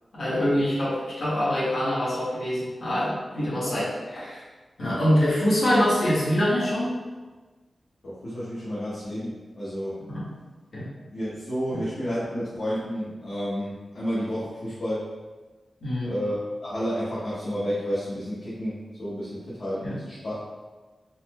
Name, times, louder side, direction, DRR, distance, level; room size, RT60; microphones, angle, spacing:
voice 1, 0.1-4.4 4.8-7.0 10.1-10.3 10.7-10.9 11.7-11.8 15.8-16.1 19.8-20.0, equal, 80° left, -11 dB, 1.3 m, -25 dB
voice 2, 8.0-10.0 11.1-15.1 16.0-16.4 16.6-20.4, equal, 55° left, -12 dB, 0.9 m, -31 dB
4.1 x 2.1 x 2.9 m, 1.3 s
wide cardioid pair, 130°, 0 cm